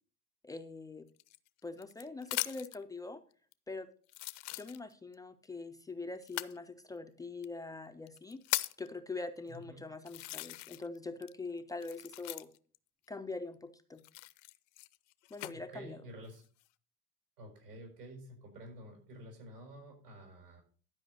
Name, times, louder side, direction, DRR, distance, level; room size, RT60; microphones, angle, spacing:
voice 1, 0.4-1.1 1.6-3.2 3.7-3.9 4.5-8.4 8.8-12.5 13.1-14.0 15.3-16.0, left 3 dB, 10° left, 7 dB, 0.4 m, -43 dB
sound 1, 1.2-2.8 3.5-3.6 4.1-5.1 6.2-6.6 7.4-7.5 8.1-8.9 9.5-9.6 10.1-11.0 11.2-12.8 14.0-15.5 16.2-16.7, left 19 dB, 55° left, 0.7 m, -39 dB
voice 2, 9.5-9.8 15.7-16.4 17.4-20.6, right 1 dB, 85° right, 2 dB, 5.8 m, -50 dB
12.0 x 5.1 x 6.5 m, 0.43 s
hypercardioid pair, 95°, 46 cm